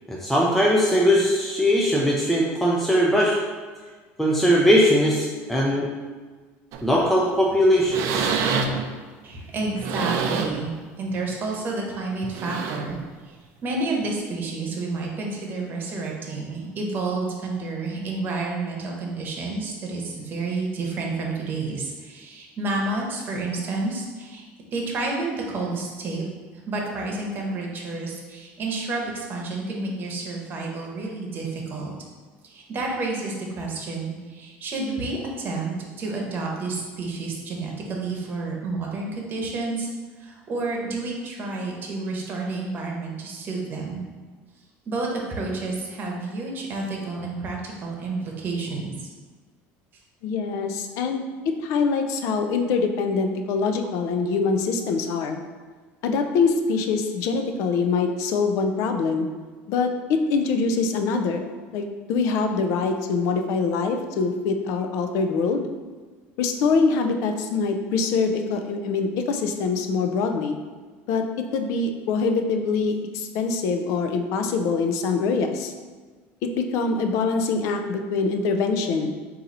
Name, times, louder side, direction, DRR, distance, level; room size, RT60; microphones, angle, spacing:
voice 1, 0.1-3.4 4.2-5.9 6.8-8.3, equal, ahead, -4 dB, 0.4 m, -20 dB
sound 1, 6.7-7.0 7.4-7.6 7.8-8.9 9.6-10.7 11.2-11.3 12.2-13.0 14.0-14.1, right 5 dB, 60° right, 0.4 m, -27 dB
voice 2, 9.2-10.7 11.0-13.0 13.2-13.4 13.6-26.2 26.5-31.9 32.4-39.9 40.2-44.0 44.9-49.1, right 3 dB, 35° right, -1 dB, 0.9 m, -30 dB
voice 3, 50.2-51.2 51.6-55.4 56.0-59.3 59.7-61.5 61.7-65.7 66.4-70.6 71.1-75.7 76.4-79.1, left 4 dB, 65° left, 6 dB, 0.5 m, -24 dB
3.9 x 2.7 x 4.1 m, 1.4 s
cardioid pair, 130°, 6 cm